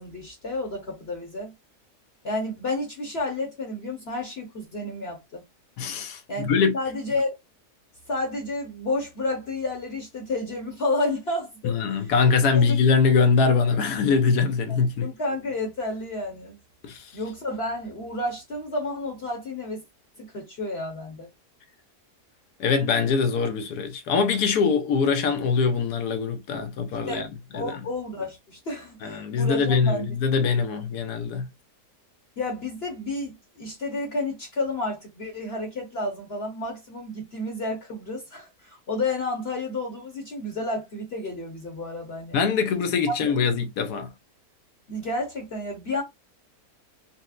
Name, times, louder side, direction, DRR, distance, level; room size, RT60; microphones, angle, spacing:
voice 1, 0.0-1.5 2.2-5.4 6.3-7.3 8.1-12.1 12.5-12.7 14.7-16.6 17.1-19.8 20.2-21.3 27.1-27.2 27.5-30.1 32.4-42.3 43.1-43.4 44.9-46.0, left 2 dB, 45° left, 1.0 m, -31 dB
voice 2, 5.8-6.7 11.6-15.1 16.8-17.1 22.6-27.3 27.5-27.7 29.0-31.5 42.3-44.1, left 5 dB, 75° left, 1.1 m, -23 dB
4.1 x 2.0 x 2.4 m
omnidirectional pair, 1.7 m